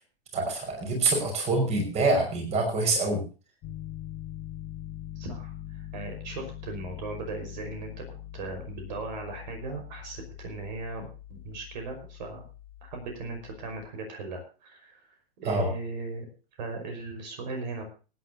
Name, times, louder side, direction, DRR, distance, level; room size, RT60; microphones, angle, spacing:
voice 1, 0.3-3.2 15.5-15.7, right 2 dB, 20° right, 3 dB, 5.6 m, -26 dB
Piano, 3.6-13.9, left 12 dB, 25° left, 2.5 m, -43 dB
voice 2, 5.2-12.5 12.8-16.3 16.6-17.8, right 3 dB, 50° right, 4 dB, 5.3 m, -38 dB
25.0 x 10.0 x 2.8 m, 0.35 s
figure-of-eight pair, 110°, 30 cm